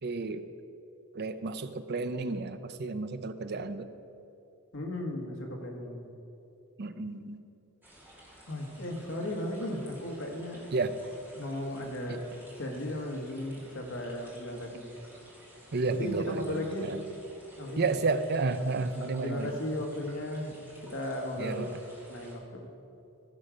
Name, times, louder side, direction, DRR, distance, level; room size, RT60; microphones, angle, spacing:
voice 1, 0.0-0.4 1.1-3.9 6.8-7.4 10.7-11.0 12.1-12.2 15.7-17.0 17.8-19.5 21.4-21.7, right 3 dB, 50° right, 10 dB, 0.5 m, -31 dB
voice 2, 4.7-6.1 8.5-10.6 11.3-12.3 12.6-14.9 15.9-16.9 17.6-17.9 19.2-20.5 20.9-22.7, left 1 dB, 60° left, 1 dB, 1.5 m, -36 dB
sound 1, 7.8-22.3, right 1 dB, 10° right, 2.3 m, -54 dB
15.5 x 6.4 x 5.1 m, 2.7 s
head